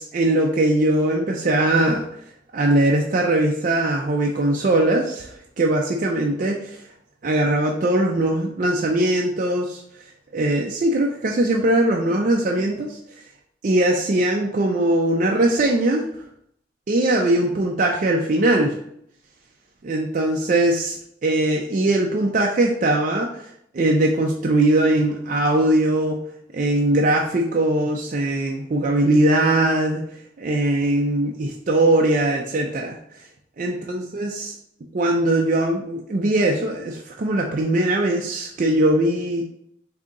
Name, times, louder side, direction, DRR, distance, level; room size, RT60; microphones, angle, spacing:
voice 1, 0.0-2.0 2.5-6.8 7.2-9.8 10.3-13.0 13.6-16.0 16.9-18.8 19.8-23.3 23.7-26.2 26.5-30.0 30.4-33.0 33.6-34.5 34.9-39.4, right 1 dB, 45° right, 0 dB, 0.4 m, -20 dB
3.7 x 2.8 x 3.6 m, 0.70 s
head